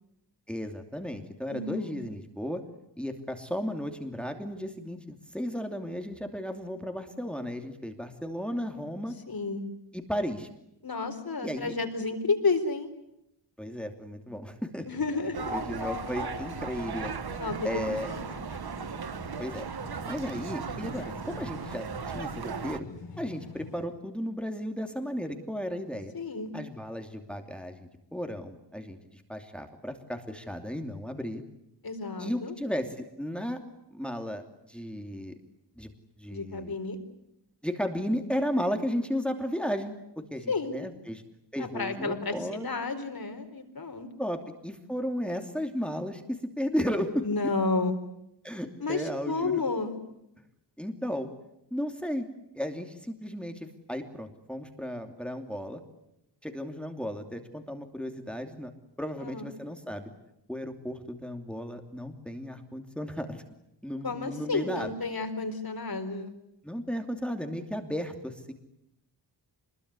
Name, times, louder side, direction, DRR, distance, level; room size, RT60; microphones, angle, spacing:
voice 1, 0.5-2.6 3.0-9.1 9.9-10.5 11.4-11.7 13.6-14.9 15.2-18.1 19.4-19.7 20.1-21.9 22.1-22.9 23.2-26.1 26.5-31.4 32.2-33.6 33.9-34.4 34.7-35.3 35.8-36.8 37.6-39.9 40.3-41.2 41.5-42.7 44.2-47.2 48.4-49.6 50.8-51.3 51.7-52.2 52.5-55.8 56.4-58.7 59.0-60.1 60.5-63.4 63.8-64.9 66.6-68.5, equal, ahead, 5 dB, 2.8 m, -34 dB
voice 2, 1.5-2.0 9.3-9.6 10.8-12.9 14.9-15.5 17.4-18.2 26.1-26.5 31.8-32.5 36.3-37.0 40.5-40.7 41.6-44.1 47.2-48.0 48.8-50.0 59.2-59.5 64.0-66.3, left 3 dB, 55° left, 6 dB, 4.4 m, -31 dB
sound 1, 14.9-23.9, left 4 dB, 90° left, 5.6 m, -44 dB
sound 2, 15.3-22.8, right 6 dB, 60° right, 1.3 m, -37 dB
27.0 x 22.0 x 9.7 m, 0.84 s
wide cardioid pair, 105°, 42 cm